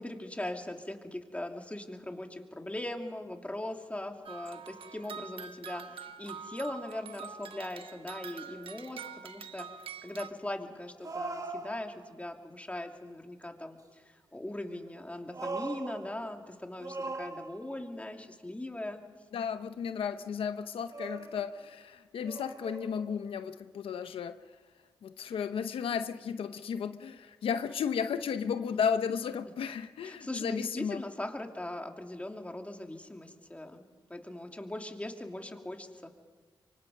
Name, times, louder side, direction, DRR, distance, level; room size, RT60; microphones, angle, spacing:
voice 1, 0.0-9.7 10.0-13.8 14.3-19.0 30.0-36.1, left 1 dB, 15° left, 3 dB, 2.8 m, -40 dB
sound 1, 4.3-10.3, right 7 dB, 80° right, 1.1 m, -45 dB
sound 2, 8.5-8.6 11.0-12.3 14.9-16.4 16.8-17.9 20.1-20.4 20.9-21.8 22.2-23.2, right 3 dB, 40° right, 1.5 m, -41 dB
voice 2, 19.3-24.4 25.0-31.0, left 7 dB, 90° left, 10 dB, 0.8 m, -34 dB
25.0 x 24.5 x 5.4 m, 1.5 s
cardioid pair, 65°, 9 cm